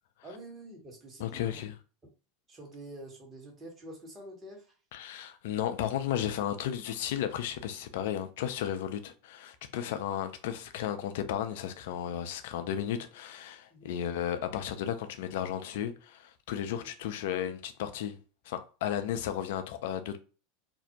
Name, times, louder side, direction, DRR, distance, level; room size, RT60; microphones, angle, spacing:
voice 1, 0.2-1.6 2.5-4.7 9.8-10.0 13.7-13.9 16.6-16.9, right 1 dB, 25° right, 1.2 m, -47 dB
voice 2, 1.2-1.7 4.9-18.2 18.5-20.2, left 10 dB, 70° left, 0.4 m, -34 dB
2.5 x 2.0 x 2.6 m
hypercardioid pair, 90°, 0 cm